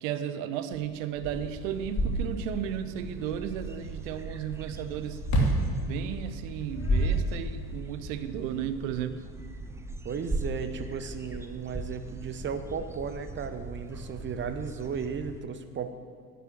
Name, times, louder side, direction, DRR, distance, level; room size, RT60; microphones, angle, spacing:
voice 1, 0.0-5.2 5.8-9.2, right 9 dB, 50° right, 11 dB, 1.0 m, -34 dB
sound 1, 0.7-0.8 1.1-2.7 5.2-5.7 6.5-7.7, right 1 dB, 35° left, 2.8 m, -27 dB
sound 2, 1.2-15.4, right 2 dB, 5° right, 0.7 m, -40 dB
voice 2, 10.0-15.9, right 6 dB, 25° right, 9 dB, 1.0 m, -35 dB
11.5 x 9.3 x 7.6 m, 2.1 s
figure-of-eight pair, 70°, 48 cm